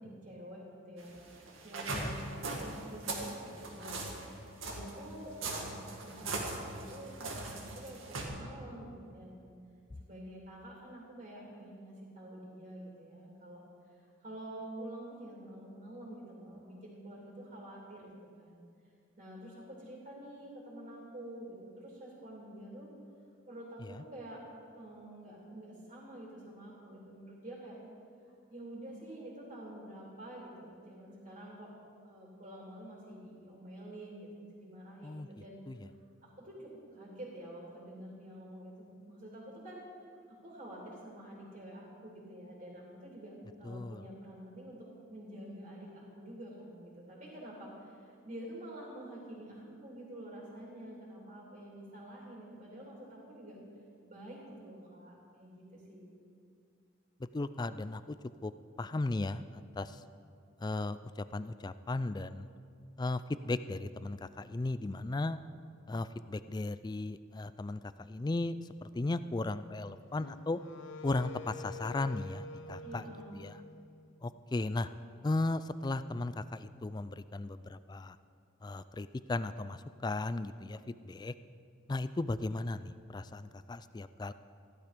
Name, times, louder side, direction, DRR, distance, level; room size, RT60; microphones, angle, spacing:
voice 1, 0.0-4.4 4.6-9.5 10.0-18.1 18.4-18.6 19.2-22.9 23.5-24.4 24.7-27.8 28.3-31.7 32.0-35.6 36.2-39.8 40.3-53.6 54.1-56.1 72.8-73.4, right 1 dB, 40° right, -4 dB, 3.1 m, -48 dB
sound 1, 1.0-8.3, right 2 dB, 90° right, 2.1 m, -40 dB
voice 2, 43.6-44.0 57.3-58.2 58.4-58.5 58.8-59.4 59.8-60.0 60.6-61.0 61.3-62.5 63.0-65.4 65.9-68.6 68.8-70.6 71.0-73.0 73.4-73.5 74.2-74.9 75.2-78.2 78.6-81.3 81.9-84.3, left 2 dB, 20° left, 14 dB, 0.3 m, -36 dB
Wind instrument woodwind instrument, 70.2-74.4, left 4 dB, 75° left, 0.7 m, -48 dB
15.0 x 12.0 x 5.2 m, 2.4 s
head